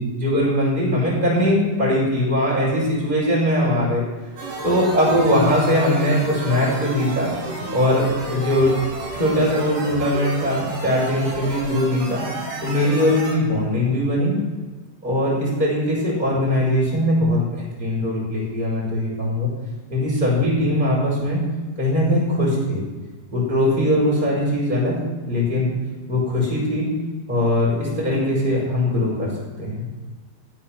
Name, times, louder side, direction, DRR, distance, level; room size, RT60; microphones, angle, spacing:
voice 1, 0.0-4.0 4.6-7.3 7.7-8.7 9.1-12.2 12.6-14.4 15.0-19.5 19.9-21.4 21.8-22.8 23.3-24.9 25.3-25.7 26.1-26.9 27.3-29.3 29.6-29.9, left 1 dB, 10° right, -5 dB, 5.6 m, -20 dB
sound 1, 4.4-13.3, right 2 dB, 65° right, 4.7 m, -31 dB
15.0 x 10.5 x 6.1 m, 1.3 s
omnidirectional pair, 4.9 m